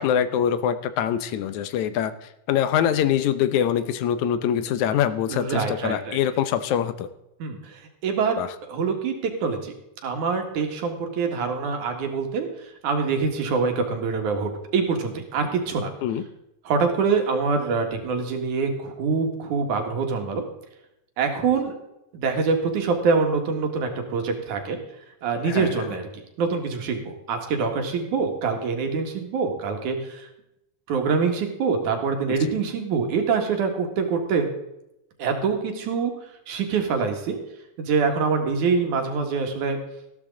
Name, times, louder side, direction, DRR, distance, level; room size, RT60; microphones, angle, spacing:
voice 1, 0.0-2.1 2.5-7.1 8.4-8.5 16.0-16.2 25.4-25.7 32.4-32.6, left 9 dB, 75° left, 12 dB, 2.0 m, -24 dB
voice 2, 5.3-6.2 7.4-9.7 10.0-15.9 16.6-20.4 21.2-21.8 22.1-24.8 25.2-26.1 26.4-30.3 30.9-34.5 35.2-36.1 36.5-37.4 37.8-39.8, right 5 dB, 75° right, 4 dB, 3.2 m, -25 dB
14.5 x 12.5 x 3.7 m, 0.85 s
omnidirectional pair, 3.5 m